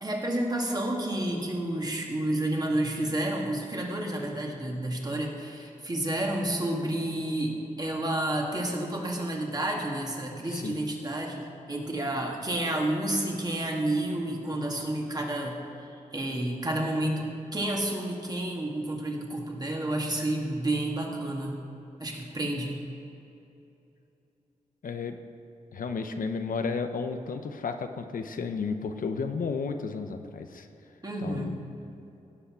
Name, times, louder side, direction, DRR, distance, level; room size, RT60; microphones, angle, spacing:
voice 1, 0.0-15.6 16.1-21.6 22.0-22.8 31.0-31.6, right 1 dB, 30° right, 0 dB, 2.0 m, -30 dB
voice 2, 10.4-10.8 24.8-25.2 25.7-30.7 31.2-31.6, left 5 dB, 75° left, 7 dB, 0.7 m, -33 dB
17.0 x 5.7 x 6.1 m, 2.9 s
cardioid pair, 80°, 14 cm